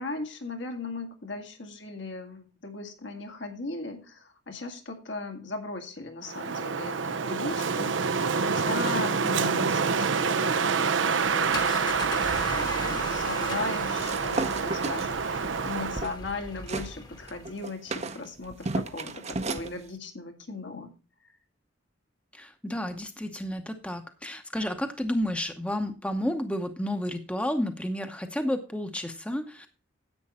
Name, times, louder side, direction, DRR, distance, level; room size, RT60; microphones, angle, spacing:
voice 1, 0.0-11.5 12.1-20.9, left 3 dB, 70° left, 5 dB, 2.1 m, -38 dB
Wind, 6.3-16.1, right 5 dB, 80° right, 0.7 m, -27 dB
sound 1, 11.2-17.6, left 2 dB, 20° left, 1.2 m, -39 dB
sound 2, 14.0-16.9 17.3-19.7, right 3 dB, 35° right, 0.7 m, -34 dB
voice 2, 22.3-29.7, left 1 dB, 5° left, 7 dB, 0.8 m, -31 dB
10.5 x 8.5 x 4.2 m, 0.34 s
head